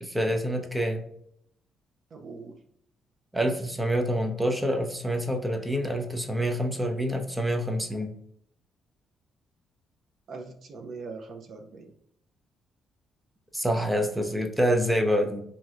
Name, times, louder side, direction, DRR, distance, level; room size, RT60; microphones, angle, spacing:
voice 1, 0.0-1.0 3.3-8.1 13.5-15.4, equal, 10° right, 4 dB, 0.5 m, -27 dB
voice 2, 2.1-2.6 10.3-11.9, right 4 dB, 60° right, 3 dB, 0.4 m, -41 dB
3.1 x 2.7 x 2.3 m, 0.72 s
cardioid pair, 90°, 0 cm